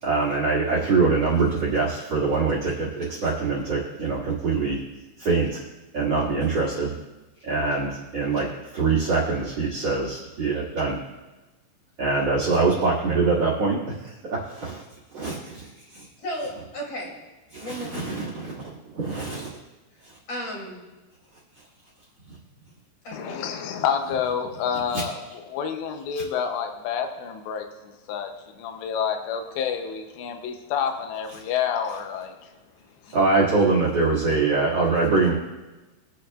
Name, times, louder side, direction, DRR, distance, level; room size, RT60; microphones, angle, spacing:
voice 1, 0.0-4.8 5.2-5.6 5.9-6.9 7.4-8.5 8.7-11.0 12.0-13.9 14.2-14.8 15.1-16.0 17.5-19.5 24.9-25.0 33.1-35.3, right 4 dB, 45° right, -4 dB, 2.5 m, -24 dB
voice 2, 16.2-17.1 17.6-17.9 20.3-20.8 23.0-23.7 24.7-24.8, equal, 40° left, -3 dB, 3.3 m, -34 dB
voice 3, 23.1-32.5 33.0-33.2, left 7 dB, 85° left, 5 dB, 3.1 m, -29 dB
24.0 x 8.6 x 2.4 m, 1.1 s
omnidirectional pair, 4.9 m